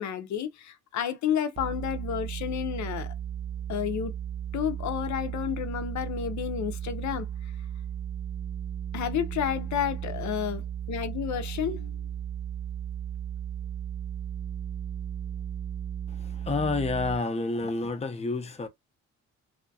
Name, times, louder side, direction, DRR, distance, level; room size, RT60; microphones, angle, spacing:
voice 1, 0.0-3.1 3.7-4.1 4.5-7.3 8.9-12.1, left 9 dB, 70° left, 0.7 m, -31 dB
sound 1, 1.6-17.2, right 9 dB, 20° right, 0.5 m, -35 dB
voice 2, 16.5-18.7, left 3 dB, 20° left, 0.6 m, -29 dB
2.8 x 2.3 x 2.7 m
cardioid pair, 90°, 30 cm